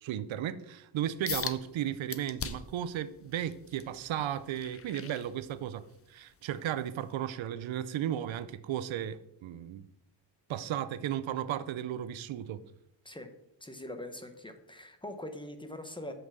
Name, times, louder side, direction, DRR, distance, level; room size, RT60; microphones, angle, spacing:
voice 1, 0.0-9.9 10.5-12.6, right 11 dB, 75° right, 0.7 m, -35 dB
sound 1, 1.3-1.6 2.1-2.8 3.3-5.9 6.3-6.6 7.1-7.2, left 6 dB, 30° left, 0.6 m, -39 dB
voice 2, 13.6-16.1, left 1 dB, 10° left, 0.9 m, -42 dB
8.0 x 5.8 x 7.0 m
wide cardioid pair, 150°, 47 cm